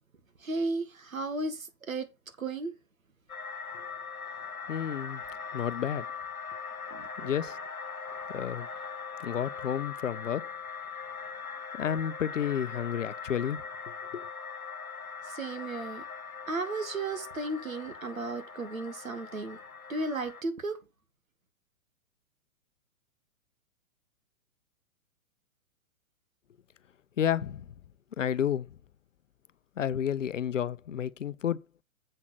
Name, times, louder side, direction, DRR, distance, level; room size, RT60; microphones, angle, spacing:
voice 1, 0.4-2.1 2.4-2.7 6.9-7.3 15.2-16.0 16.5-19.6 19.9-20.8, right 3 dB, 70° right, 1.9 m, -34 dB
sound 1, 3.3-20.4, left 5 dB, 90° left, 1.0 m, -41 dB
voice 2, 4.7-5.2 5.5-6.1 7.2-7.6 8.3-8.7 9.2-10.5 11.8-13.6 14.1-14.3 27.2-27.6 28.2-28.7 29.8-31.6, left 9 dB, 60° left, 0.7 m, -31 dB
7.8 x 5.8 x 6.0 m
figure-of-eight pair, 115°, 42 cm